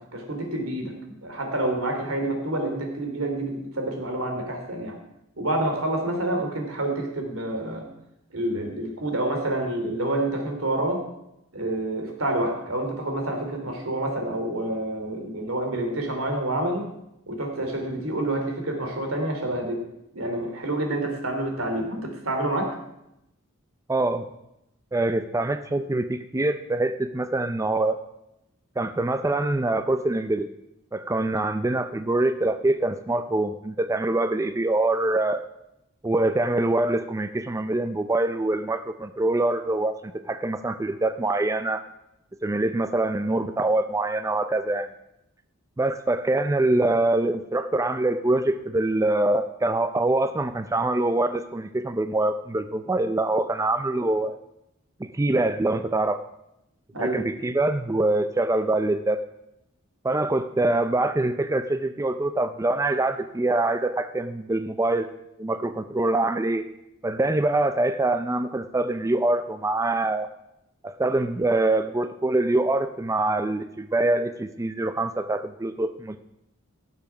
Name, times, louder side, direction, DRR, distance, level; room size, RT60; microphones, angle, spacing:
voice 1, 0.0-5.0 5.4-7.9 8.3-11.0 11.5-16.8 17.3-19.8 20.1-22.7 56.9-57.2, right 1 dB, 80° right, 3 dB, 3.0 m, -28 dB
voice 2, 23.9-24.3 24.9-28.0 28.8-30.5 30.9-35.4 36.0-41.8 42.4-44.9 45.8-54.4 55.0-56.2 57.0-59.2 60.0-65.1 65.4-66.6 67.0-70.3 70.8-76.2, right 2 dB, 15° right, 9 dB, 0.4 m, -24 dB
16.5 x 7.0 x 5.9 m, 0.85 s
head